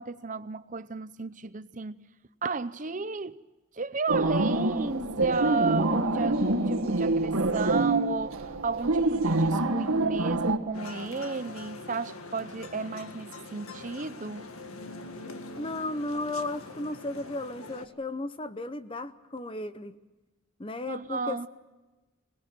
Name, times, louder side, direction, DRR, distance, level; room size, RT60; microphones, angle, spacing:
voice 1, 0.0-2.0 2.4-3.4 3.7-14.5 20.9-21.5, right 4 dB, 35° right, 0.7 m, -33 dB
sound 1, 4.1-10.6, right 2 dB, 80° right, 2.0 m, -26 dB
sound 2, 10.7-17.9, left 2 dB, 80° left, 1.9 m, -43 dB
voice 2, 15.6-20.0 20.6-21.5, left 2 dB, 25° left, 0.8 m, -34 dB
25.0 x 19.0 x 7.7 m
head